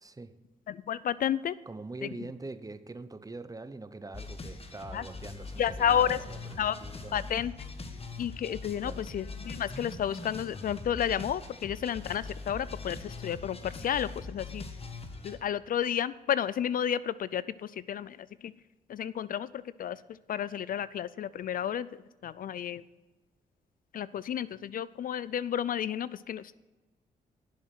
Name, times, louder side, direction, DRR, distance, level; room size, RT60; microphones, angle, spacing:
voice 1, 0.0-0.4 1.7-7.2 8.8-9.1, right 3 dB, 20° right, 12 dB, 0.8 m, -43 dB
voice 2, 0.7-1.6 2.0-2.1 4.9-5.0 5.6-6.2 6.6-6.8 7.1-7.5 8.2-14.6 15.2-18.5 18.9-22.8 23.9-26.5, left 9 dB, 60° left, 18 dB, 0.4 m, -31 dB
sound 1, 4.1-15.4, left 3 dB, 35° left, 1.4 m, -42 dB
11.0 x 7.2 x 6.0 m, 1.2 s
supercardioid pair, 60°, 17 cm